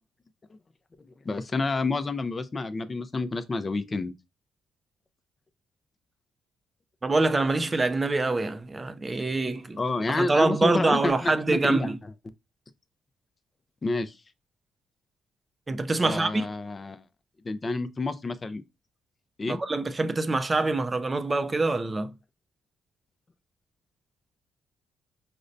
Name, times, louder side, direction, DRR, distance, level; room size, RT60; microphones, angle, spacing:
voice 1, 1.2-4.1 9.8-11.9 13.8-14.1 16.0-17.0 17.4-18.6 19.4-19.6, left 3 dB, 30° left, 0.5 m, -29 dB
voice 2, 7.0-9.8 10.1-12.0 15.7-16.5 19.5-22.1, right 3 dB, 25° right, 0.4 m, -25 dB
5.1 x 2.1 x 2.6 m
cardioid pair, 90°, 0 cm